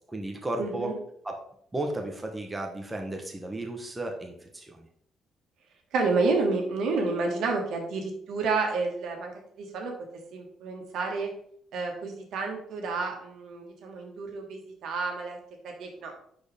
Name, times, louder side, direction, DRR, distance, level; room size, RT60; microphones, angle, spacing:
voice 1, 0.1-0.9 1.2-1.4 1.7-4.9, right 2 dB, 10° right, 2 dB, 1.0 m, -34 dB
voice 2, 0.6-0.9 5.9-9.9 10.3-11.3 11.7-15.4 15.6-16.1, right 3 dB, 75° right, 2 dB, 1.8 m, -30 dB
10.5 x 4.4 x 3.5 m, 0.67 s
cardioid pair, 140°, 0 cm